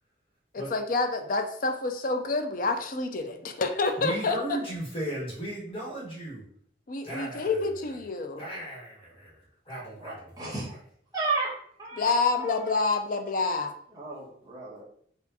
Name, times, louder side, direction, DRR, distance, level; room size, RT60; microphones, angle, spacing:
voice 1, 0.5-4.6 6.9-8.4 12.0-13.7, left 3 dB, 45° left, 6 dB, 0.4 m, -28 dB
voice 2, 4.0-6.4 7.0-7.7 8.4-10.5, right 1 dB, 30° left, -6 dB, 1.3 m, -36 dB
voice 3, 10.0-10.7 11.1-11.5 11.8-12.1 12.4-12.8 13.9-14.8, right 3 dB, 20° right, -7 dB, 1.3 m, -33 dB
4.3 x 2.5 x 2.7 m, 0.63 s
head